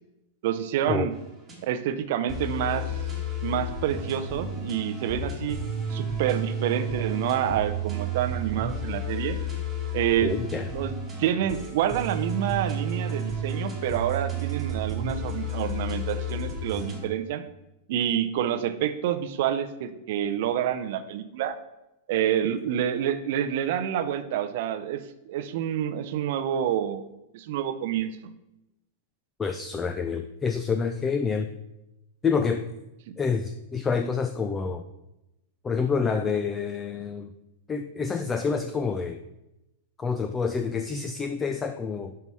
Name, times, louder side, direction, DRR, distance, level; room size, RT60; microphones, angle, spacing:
voice 1, 0.4-1.1 1.6-2.9 3.4-5.6 5.9-9.4 9.9-10.4 10.7-10.9 11.2-17.4 17.9-21.6 22.1-27.0 27.3-28.3 33.1-33.2, right 10 dB, 55° right, 11 dB, 0.5 m, -28 dB
sound 1, 1.1-1.6 2.3-17.0, right 1 dB, 10° right, 1.5 m, -32 dB
voice 2, 10.2-10.7 29.4-31.5 32.2-32.7 33.2-34.8 35.6-37.3 37.7-39.2 40.0-42.1, left 5 dB, 15° left, 8 dB, 0.3 m, -27 dB
5.6 x 5.5 x 4.7 m, 0.92 s
supercardioid pair, 155°, 0 cm